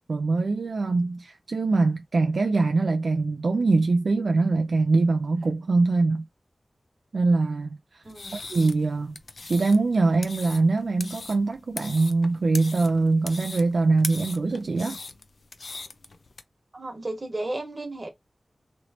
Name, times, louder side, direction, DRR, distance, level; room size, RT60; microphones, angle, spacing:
voice 1, 0.1-6.3 7.1-8.0 8.3-9.1 9.5-15.0, right 3 dB, 80° right, 0.3 m, -23 dB
sound 1, 8.0-16.4, left 3 dB, 75° left, 0.4 m, -40 dB
voice 2, 8.0-8.4 16.7-18.1, right 2 dB, 50° right, 1.2 m, -33 dB
3.1 x 2.8 x 2.8 m
cardioid pair, 45°, 0 cm